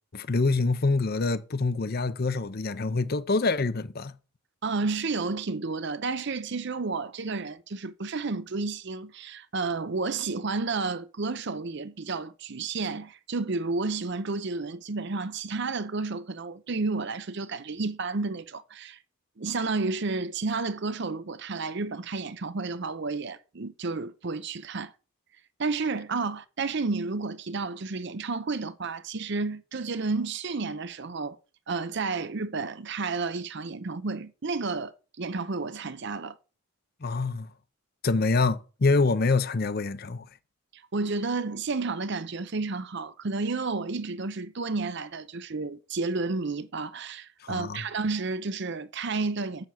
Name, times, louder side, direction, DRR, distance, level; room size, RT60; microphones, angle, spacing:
voice 1, 0.1-4.1 37.0-37.5 38.0-40.2 47.4-47.9, left 3 dB, 45° left, 0.7 m, -26 dB
voice 2, 4.6-19.0 19.4-24.9 25.6-31.4 31.7-36.4 40.7-49.6, right 3 dB, 55° right, 0.6 m, -31 dB
7.0 x 6.6 x 7.7 m
head